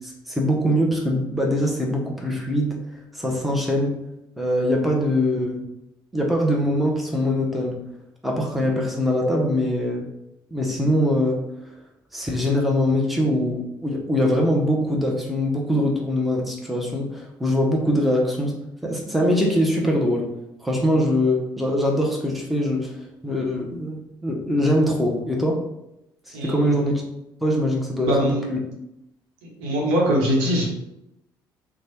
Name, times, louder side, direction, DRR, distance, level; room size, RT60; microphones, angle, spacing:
voice 1, 0.0-2.7 3.1-4.0 4.4-5.6 6.1-7.8 8.2-10.1 10.5-11.4 12.1-18.6 18.8-20.3 20.6-22.9 23.2-25.6 26.3-27.0 27.4-28.6, left 1 dB, ahead, -2 dB, 0.9 m, -22 dB
voice 2, 26.3-26.7 28.0-28.4 29.4-30.7, equal, 65° right, -3 dB, 1.0 m, -22 dB
3.1 x 2.3 x 4.3 m, 0.86 s
figure-of-eight pair, 50°, 12 cm